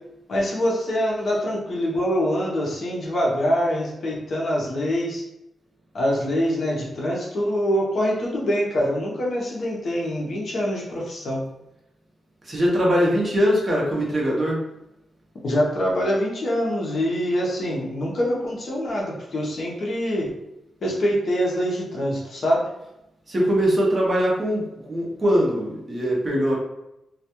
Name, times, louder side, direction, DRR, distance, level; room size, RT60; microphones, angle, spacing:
voice 1, 0.3-5.2 5.9-11.4 15.4-20.3 20.8-22.6, equal, 50° left, -3 dB, 0.6 m, -24 dB
voice 2, 12.4-14.6 23.3-26.6, equal, 25° right, -3 dB, 0.6 m, -21 dB
2.2 x 2.1 x 2.8 m, 0.89 s
wide cardioid pair, 160°, 0 cm